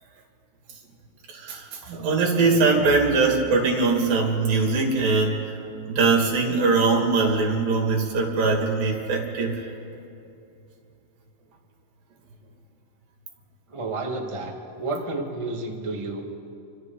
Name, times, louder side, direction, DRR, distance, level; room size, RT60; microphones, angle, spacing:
voice 1, 1.3-5.6 5.9-9.7, right 4 dB, 65° right, 1 dB, 4.1 m, -22 dB
voice 2, 13.7-16.2, right 2 dB, 35° right, 0 dB, 0.5 m, -31 dB
28.5 x 24.5 x 4.0 m, 2.7 s
omnidirectional pair, 4.3 m